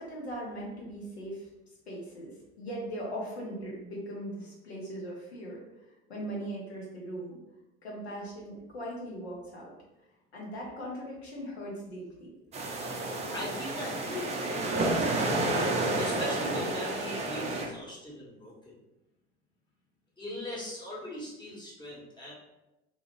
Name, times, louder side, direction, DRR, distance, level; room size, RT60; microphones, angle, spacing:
voice 1, 0.0-1.5 1.9-5.6 6.1-7.4 7.8-9.7 10.3-12.3, right 1 dB, 75° left, -3 dB, 0.9 m, -39 dB
sound 1, 12.5-17.7, right 2 dB, 20° right, 0.4 m, -30 dB
voice 2, 13.3-14.4 16.0-18.5 20.2-22.3, equal, 15° left, -6 dB, 1.1 m, -39 dB
2.7 x 2.4 x 2.8 m, 0.96 s
figure-of-eight pair, 65°, 32 cm